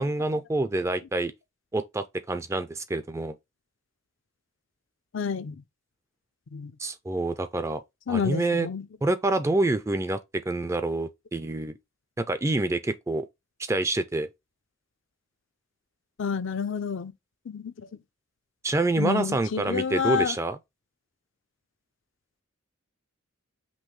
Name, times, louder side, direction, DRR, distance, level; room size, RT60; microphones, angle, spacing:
voice 1, 0.0-1.3 1.7-3.3 6.8-7.8 8.1-8.7 9.0-11.7 12.2-13.2 13.7-14.3 18.6-20.6, right 2 dB, 15° right, 0.3 m, -27 dB
voice 2, 5.1-5.6 6.5-6.7 8.1-8.9 16.2-17.1 17.5-17.9 19.0-20.4, left 6 dB, 65° left, 0.5 m, -29 dB
5.3 x 3.0 x 3.1 m
head